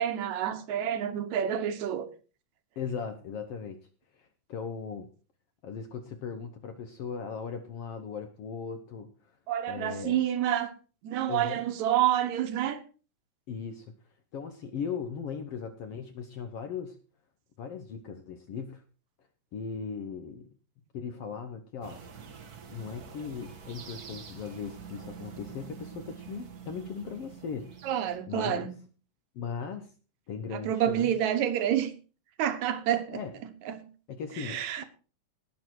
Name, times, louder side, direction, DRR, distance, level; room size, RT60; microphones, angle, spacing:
voice 1, 0.0-2.1 9.5-10.7 11.0-12.8 27.8-28.7 30.5-31.9 32.4-33.9 34.4-34.8, right 10 dB, 65° right, 2.2 m, -28 dB
voice 2, 2.8-3.8 4.1-5.1 5.6-9.1 9.7-10.2 11.3-11.6 13.5-13.9 14.3-17.0 17.6-18.8 19.5-20.5 20.9-22.0 22.7-27.7 28.3-28.7 29.3-29.9 30.3-31.1 33.1-33.3 34.1-34.8, left 6 dB, 75° left, 1.4 m, -38 dB
sound 1, 21.8-28.2, right 6 dB, 85° right, 0.8 m, -46 dB
19.0 x 6.5 x 4.5 m
omnidirectional pair, 3.9 m